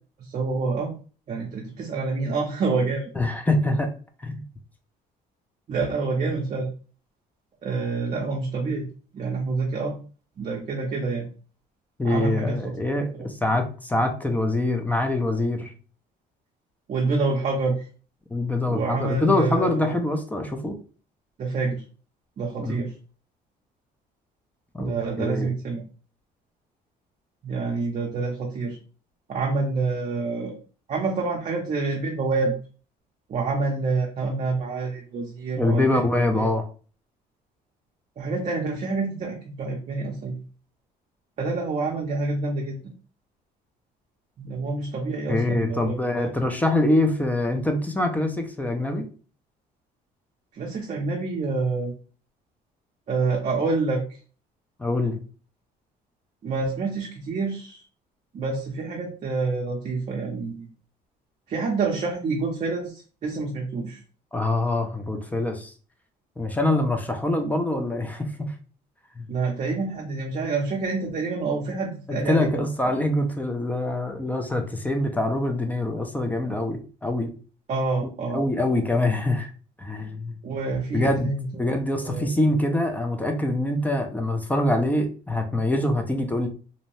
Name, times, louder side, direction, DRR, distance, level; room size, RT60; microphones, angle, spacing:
voice 1, 0.2-0.9 1.3-3.1 5.7-6.7 7.6-8.9 9.1-10.0 10.4-11.3 12.0-12.6 16.9-17.8 18.7-20.0 21.4-21.8 22.4-22.9 24.8-25.8 27.4-28.8 29.3-30.6 30.9-32.5 33.3-36.5 38.2-40.3 41.4-42.8 44.4-46.3 50.5-51.9 53.1-54.0 56.4-57.8 58.3-60.7 61.5-64.0 69.3-72.6 77.7-78.4 80.4-81.5 82.0-82.3, right 3 dB, 45° right, -1 dB, 0.6 m, -27 dB
voice 2, 3.2-3.9 4.2-4.4 12.0-15.7 18.3-20.8 22.6-22.8 24.7-25.5 35.6-36.6 45.3-49.1 54.8-55.2 64.3-65.7 66.4-68.5 69.2-69.3 72.1-77.3 78.3-79.5 79.8-80.4 80.9-81.3 81.6-86.5, left 2 dB, 10° left, 5 dB, 0.4 m, -24 dB
2.6 x 2.0 x 3.0 m, 0.38 s
cardioid pair, 110°, 17 cm